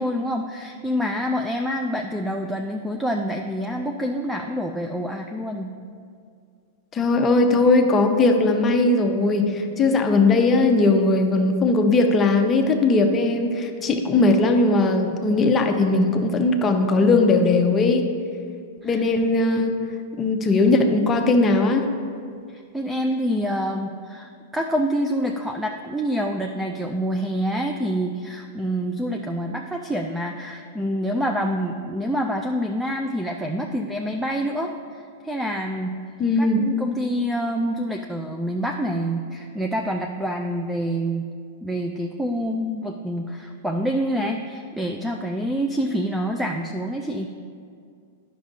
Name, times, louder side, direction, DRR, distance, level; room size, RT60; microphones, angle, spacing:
voice 1, 0.0-5.7 18.8-19.0 22.5-36.0 36.4-41.3 41.6-47.3, equal, 5° right, 3 dB, 0.4 m, -27 dB
voice 2, 6.9-18.1 18.8-19.7 20.2-21.9 36.2-36.6, left 3 dB, 20° left, 4 dB, 0.7 m, -19 dB
10.0 x 6.1 x 2.7 m, 2.2 s
hypercardioid pair, 130°, 0 cm